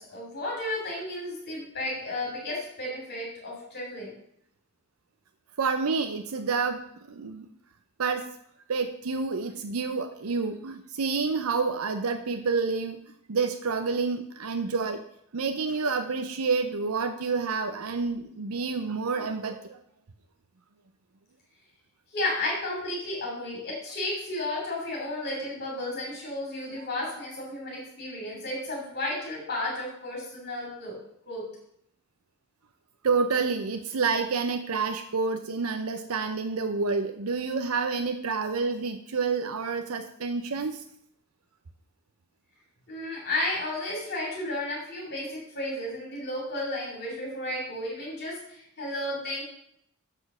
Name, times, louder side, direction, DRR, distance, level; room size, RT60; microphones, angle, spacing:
voice 1, 0.0-4.1 22.1-31.0 31.3-31.4 42.9-49.4, left 1 dB, 50° left, -3 dB, 3.0 m, -33 dB
voice 2, 5.6-6.8 7.1-7.5 8.0-8.3 8.7-13.0 13.3-15.0 15.3-19.8 33.0-40.8, right 4 dB, 70° right, 7 dB, 0.6 m, -28 dB
7.5 x 6.3 x 6.1 m, 0.72 s
head